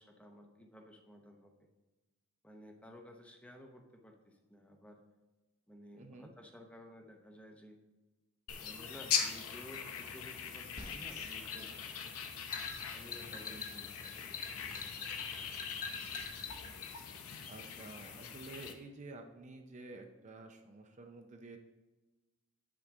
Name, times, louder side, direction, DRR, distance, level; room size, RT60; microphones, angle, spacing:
voice 1, 0.0-1.5 2.4-5.0 5.7-7.8 8.6-11.9 12.9-15.5, equal, 5° left, 3 dB, 0.7 m, -55 dB
voice 2, 5.9-6.3 13.5-13.8 17.5-21.6, right 2 dB, 35° right, 5 dB, 0.5 m, -51 dB
sound 1, 8.5-18.7, left 7 dB, 80° left, 0.7 m, -41 dB
sound 2, 10.8-16.9, left 5 dB, 40° left, 1.0 m, -44 dB
7.8 x 5.8 x 3.6 m, 1.2 s
head